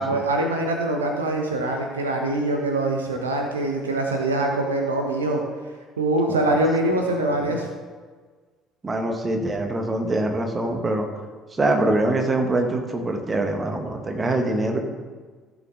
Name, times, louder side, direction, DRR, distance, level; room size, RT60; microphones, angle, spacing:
voice 1, 0.0-5.4 6.0-7.7, right 2 dB, 80° right, 2 dB, 1.0 m, -23 dB
voice 2, 6.3-6.6 7.3-7.6 8.8-11.1 11.5-14.8, right 2 dB, 25° right, 4 dB, 1.7 m, -24 dB
15.0 x 7.2 x 3.7 m, 1.5 s
figure-of-eight pair, 55°, 0 cm